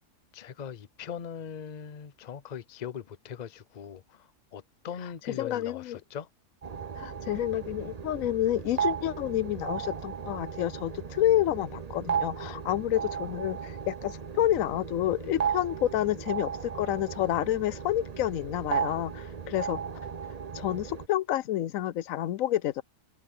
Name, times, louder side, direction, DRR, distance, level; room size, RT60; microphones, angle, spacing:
voice 1, 0.3-4.0 4.5-6.3, left 8 dB, 40° left, 0.7 m, -40 dB
voice 2, 5.2-6.0 7.0-19.8 20.5-22.8, left 13 dB, 85° left, 1.0 m, -29 dB
sound 1, 6.6-21.1, right 7 dB, 35° right, 0.8 m, -35 dB
omnidirectional pair, 1.4 m